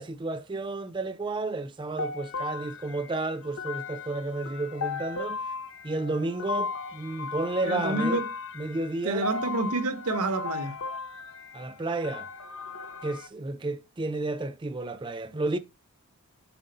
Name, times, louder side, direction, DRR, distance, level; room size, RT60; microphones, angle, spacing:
voice 1, 0.0-5.4 5.8-8.2 8.6-9.3 11.5-12.3 13.0-15.6, right 2 dB, 20° right, 0.4 m, -32 dB
sound 1, 2.0-13.3, left 4 dB, 60° left, 0.8 m, -36 dB
voice 2, 7.7-8.3 9.0-10.8, right 2 dB, 85° right, 0.9 m, -28 dB
7.1 x 2.7 x 5.2 m
head